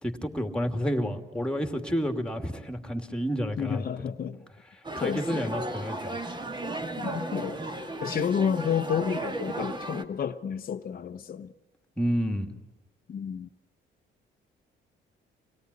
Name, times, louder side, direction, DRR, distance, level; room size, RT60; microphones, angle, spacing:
voice 1, 0.0-4.0 4.9-6.2 12.0-12.5, equal, 5° left, 2.5 m, -30 dB
voice 2, 3.6-4.4 5.0-5.5 7.0-7.6 8.0-11.5 13.1-13.5, left 7 dB, 45° left, 1.0 m, -30 dB
sound 1, 4.8-10.0, right 2 dB, 25° right, 2.0 m, -35 dB
26.0 x 17.5 x 9.8 m
cardioid pair, 90°, 20 cm